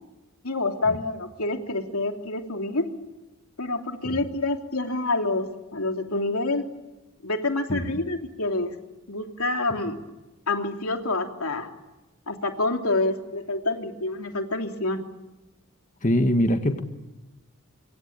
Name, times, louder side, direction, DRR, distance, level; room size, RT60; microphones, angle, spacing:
voice 1, 0.4-2.9 3.6-6.6 7.2-8.8 9.1-10.0 10.5-11.7 12.3-15.0, left 2 dB, 90° left, 4 dB, 3.1 m, -27 dB
voice 2, 16.0-16.8, equal, 35° left, 7 dB, 1.7 m, -23 dB
26.0 x 25.0 x 8.8 m, 1.1 s
head